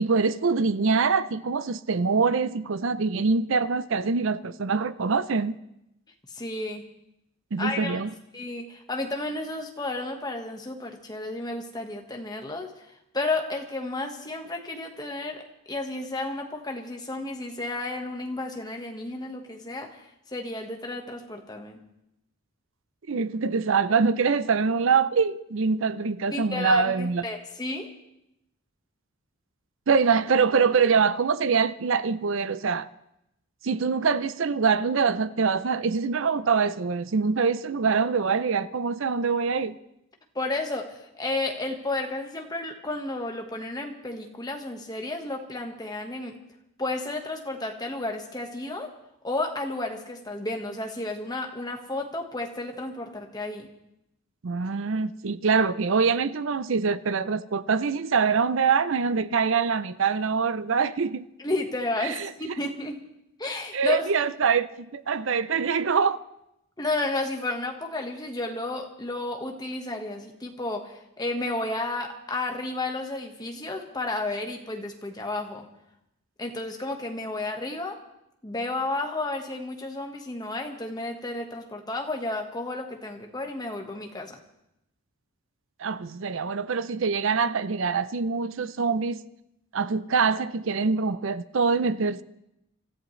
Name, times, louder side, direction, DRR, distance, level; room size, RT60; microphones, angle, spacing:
voice 1, 0.0-5.6 7.5-8.1 23.1-27.2 29.9-32.9 33.6-39.8 54.4-61.3 62.0-62.3 63.7-66.2 85.8-89.2 89.7-92.2, right 5 dB, 65° right, 0.5 m, -24 dB
voice 2, 6.3-6.8 7.6-8.0 8.3-12.9 13.1-15.4 15.7-20.0 20.3-21.8 26.3-27.9 40.3-46.4 46.8-48.9 49.2-53.7 61.4-63.0 63.4-64.1 66.8-75.7 76.4-78.0 78.4-84.4, left 2 dB, 20° left, 1.4 m, -32 dB
26.5 x 14.0 x 3.2 m
head